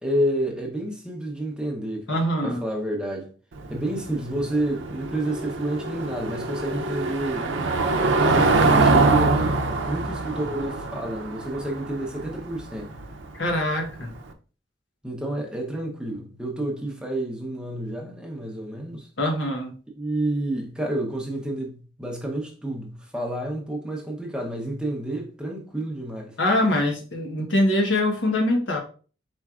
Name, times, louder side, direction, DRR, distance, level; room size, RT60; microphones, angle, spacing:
voice 1, 0.0-3.3 3.7-7.9 8.3-12.9 15.0-19.1 20.0-26.4, right 1 dB, 5° right, 0.7 m, -29 dB
voice 2, 2.1-2.6 13.3-14.1 19.2-19.8 26.4-28.8, left 1 dB, 80° left, 1.1 m, -23 dB
Car passing by / Engine, 3.5-14.2, right 3 dB, 85° right, 0.5 m, -24 dB
4.5 x 4.4 x 2.4 m
head